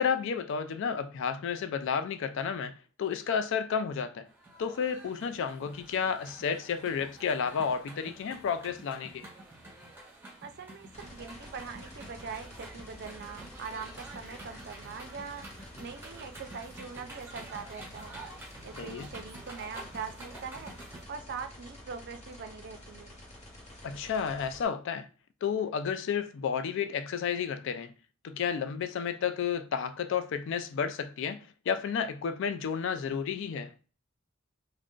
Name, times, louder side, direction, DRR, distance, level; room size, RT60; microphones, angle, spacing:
voice 1, 0.0-4.3 4.6-9.3 18.8-19.1 23.8-25.1 25.4-27.9 28.2-33.7, left 7 dB, 60° left, 0.3 m, -31 dB
sound 1, 4.3-21.0, right 1 dB, 10° right, 0.8 m, -49 dB
voice 2, 10.4-15.5 15.8-18.2 18.6-20.7 21.1-23.2, right 5 dB, 50° right, 0.4 m, -42 dB
sound 2, 10.9-24.6, left 1 dB, 35° left, 0.9 m, -49 dB
2.4 x 2.1 x 3.7 m
head